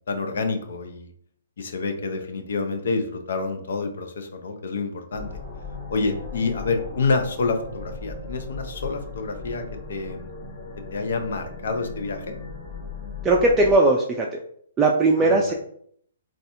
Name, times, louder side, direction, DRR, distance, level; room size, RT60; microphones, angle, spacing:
voice 1, 0.1-1.1 1.6-5.4 5.9-9.6 9.9-10.3 10.9-12.3 15.2-15.4, left 4 dB, 70° left, 6 dB, 0.6 m, -28 dB
sound 1, 5.1-13.8, left 3 dB, 30° left, 0.8 m, -38 dB
voice 2, 13.2-14.4 14.8-15.5, right 2 dB, 15° right, -1 dB, 0.4 m, -19 dB
4.0 x 2.4 x 2.6 m, 0.64 s
hypercardioid pair, 150°, 0 cm